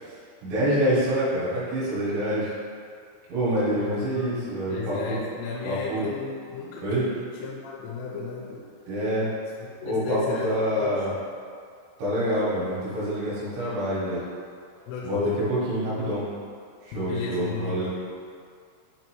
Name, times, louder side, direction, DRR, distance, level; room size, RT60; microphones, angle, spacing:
voice 1, 0.4-2.5 3.3-5.2 5.6-6.1 6.8-7.0 8.9-9.3 9.8-11.1 12.0-14.2 15.0-15.2 15.5-16.2 16.8-17.9, equal, 70° right, -9 dB, 3.6 m, -26 dB
voice 2, 3.7-8.7 9.6-11.1 14.9-15.5 15.9-16.2 16.9-17.9, left 5 dB, 85° left, -4 dB, 3.2 m, -34 dB
7.9 x 2.9 x 4.6 m, 2.3 s
omnidirectional pair, 5.8 m